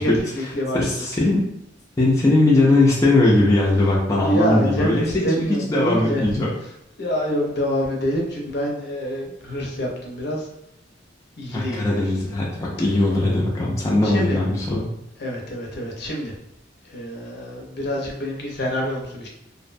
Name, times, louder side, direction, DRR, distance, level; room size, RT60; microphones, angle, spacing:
voice 1, 0.0-0.9 4.2-6.3 7.0-10.5 11.4-12.0 14.0-14.4 15.2-16.3 16.9-19.3, equal, 60° left, -1 dB, 0.6 m, -26 dB
voice 2, 0.7-1.4 2.0-6.6 11.5-14.9, left 2 dB, 15° left, -5 dB, 0.4 m, -19 dB
2.5 x 2.1 x 2.5 m, 0.81 s
head